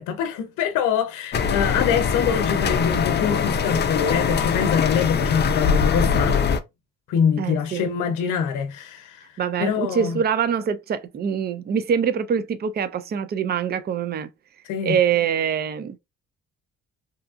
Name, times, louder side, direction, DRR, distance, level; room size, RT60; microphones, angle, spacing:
voice 1, 0.0-6.4 7.1-9.3 9.6-10.2 14.6-15.0, left 7 dB, 90° left, 0.6 m, -24 dB
sound 1, 1.3-6.6, left 6 dB, 35° left, 0.4 m, -22 dB
voice 2, 7.4-7.9 9.4-14.3 14.8-16.0, right 7 dB, 35° right, 0.4 m, -24 dB
2.7 x 2.4 x 2.4 m
cardioid pair, 90°, 30 cm